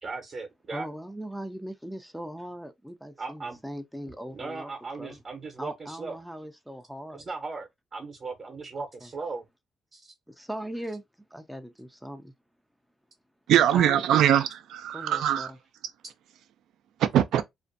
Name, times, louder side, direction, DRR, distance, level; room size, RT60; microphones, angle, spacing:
voice 1, 0.0-0.9 3.2-3.6 4.3-6.2 7.1-9.4 9.9-10.1, right 4 dB, 40° right, 0.7 m, -37 dB
voice 2, 0.7-4.7 5.0-5.2 5.6-7.3 9.0-9.1 10.3-11.0 11.3-12.3 13.7-14.0 14.9-15.6, equal, ahead, 0.3 m, -39 dB
voice 3, 13.5-15.5 17.0-17.4, right 11 dB, 80° right, 0.3 m, -22 dB
2.5 x 2.1 x 2.5 m
cardioid pair, 90°, 0 cm